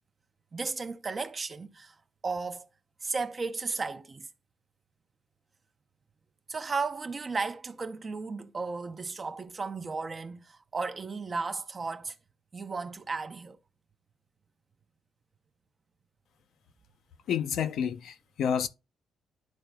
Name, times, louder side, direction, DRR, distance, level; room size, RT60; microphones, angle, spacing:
voice 1, 0.5-2.0 2.2-2.7 3.0-4.3 6.5-12.2 12.5-13.6, right 4 dB, 35° right, 0.6 m, -34 dB
voice 2, 17.3-18.7, left 8 dB, 75° left, 0.6 m, -29 dB
11.5 x 3.9 x 2.3 m
cardioid pair, 90°, 0 cm